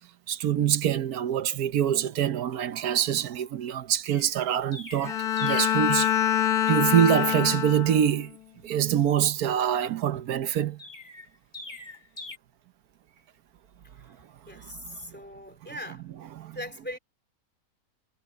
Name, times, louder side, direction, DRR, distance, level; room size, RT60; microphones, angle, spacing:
voice 1, 0.3-5.2 5.4-6.1 6.7-8.3 8.6-10.8 16.4-16.6, right 10 dB, 75° right, 1.3 m, -25 dB
Chirp tweet, 4.1-5.9 10.8-12.4, left 2 dB, 25° left, 2.0 m, -43 dB
Bowed string instrument, 5.0-8.2, left 10 dB, 85° left, 1.6 m, -25 dB
voice 2, 14.5-16.0 16.5-17.0, left 1 dB, 5° left, 3.0 m, -40 dB
omnidirectional pair, 1.6 m